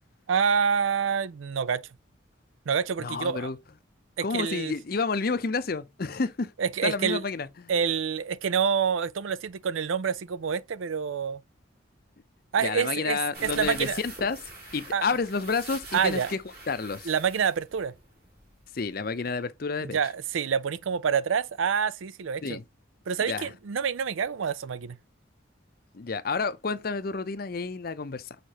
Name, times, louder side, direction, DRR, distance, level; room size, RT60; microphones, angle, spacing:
voice 1, 0.3-1.8 2.7-3.5 4.2-4.7 6.6-7.2 7.7-11.4 12.5-14.0 14.9-15.1 15.9-16.3 17.0-17.9 19.8-22.6 23.1-25.0, right 6 dB, 85° right, 0.5 m, -27 dB
voice 2, 3.0-3.6 4.2-6.5 6.8-7.7 12.6-14.4 14.7-16.4 16.7-17.1 18.7-20.0 22.4-22.6 23.3-23.5 25.9-28.4, left 4 dB, 50° left, 0.6 m, -30 dB
sound 1, 13.3-18.6 18.9-19.0 19.3-19.4, right 2 dB, 50° right, 3.1 m, -44 dB
6.5 x 5.1 x 2.9 m
head